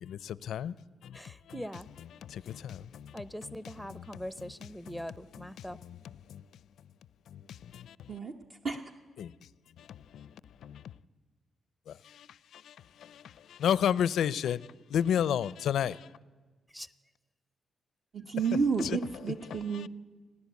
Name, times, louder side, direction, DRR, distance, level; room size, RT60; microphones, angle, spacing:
voice 1, 0.0-0.7 1.0-1.2 2.2-3.1 3.4-3.5 3.9-4.1 4.4-4.5 4.9-5.0 5.3-6.0 6.3-6.4 7.3-8.1 9.2-9.3 9.8-10.3 10.6-10.8 11.9-12.3 12.5-12.7 13.0-13.2 13.5-16.1 18.8-19.0 19.5-19.9, left 9 dB, 75° left, 0.5 m, -32 dB
voice 2, 1.1-1.9 3.1-5.8 16.7-16.9, equal, ahead, 0.7 m, -42 dB
voice 3, 18.1-19.9, right 5 dB, 45° right, 1.1 m, -30 dB
29.5 x 11.0 x 8.3 m
cardioid pair, 125°, 0 cm